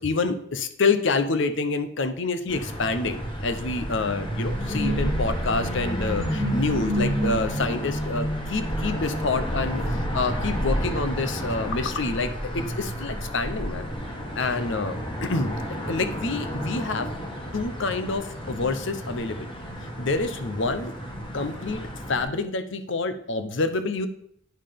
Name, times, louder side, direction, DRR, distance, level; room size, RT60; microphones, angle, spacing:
voice 1, 0.0-13.9 14.3-15.5 15.9-17.1 17.5-19.5 20.0-20.9 21.3-21.8 22.1-24.1, left 3 dB, 60° left, 10 dB, 0.8 m, -27 dB
sound 1, 2.5-22.2, equal, 25° left, 1.7 m, -30 dB
8.9 x 5.7 x 5.2 m, 0.69 s
head